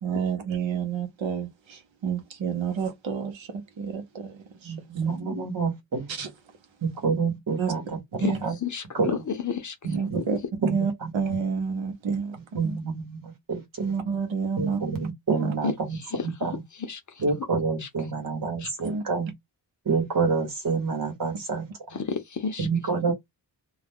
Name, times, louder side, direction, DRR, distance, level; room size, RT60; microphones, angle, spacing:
voice 1, 0.0-5.0 6.1-6.3 7.6-7.7 8.2-8.4 9.8-12.8 13.8-14.8 15.4-15.5 18.8-19.0, right 6 dB, 90° right, 0.8 m, -29 dB
voice 2, 4.6-6.1 6.8-7.8 8.4-8.5 8.9-9.1 9.8-10.2 10.6-11.1 12.5-13.6 14.6-16.6 17.2-19.3 19.8-21.7 22.6-23.1, right 4 dB, 45° right, 1.0 m, -28 dB
voice 3, 8.6-9.7 10.1-10.2 15.6-15.7 16.9-17.0 17.8-17.9 18.6-18.7 21.9-22.7, left 6 dB, 40° left, 0.6 m, -30 dB
2.3 x 2.1 x 3.4 m
wide cardioid pair, 160°, 45 cm